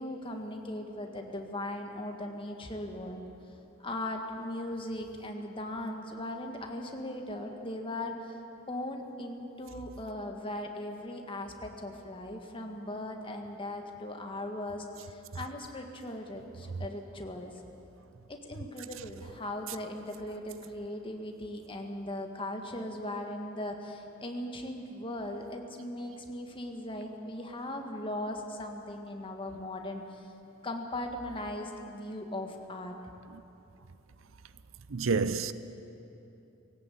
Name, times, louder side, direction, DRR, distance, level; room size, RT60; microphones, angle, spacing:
voice 1, 0.0-3.2 3.8-8.4 8.7-17.5 18.3-30.3 30.6-33.0, left 1 dB, 25° left, 1.7 m, -38 dB
voice 2, 34.9-35.5, right 4 dB, 85° right, 0.6 m, -28 dB
18.5 x 17.0 x 8.6 m
head